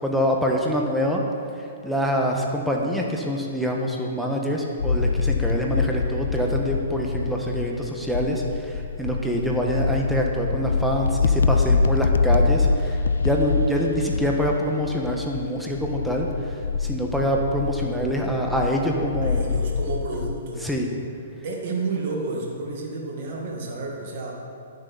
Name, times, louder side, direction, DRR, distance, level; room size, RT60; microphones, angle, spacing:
voice 1, 0.0-1.2 1.8-19.4 20.6-20.9, equal, ahead, -1 dB, 1.5 m, -25 dB
sound 1, 4.8-20.3, left 4 dB, 80° left, 0.4 m, -25 dB
voice 2, 19.2-20.6 21.4-24.3, right 3 dB, 55° right, -1 dB, 2.1 m, -30 dB
11.5 x 10.5 x 4.2 m, 2.6 s
hypercardioid pair, 130°, 0 cm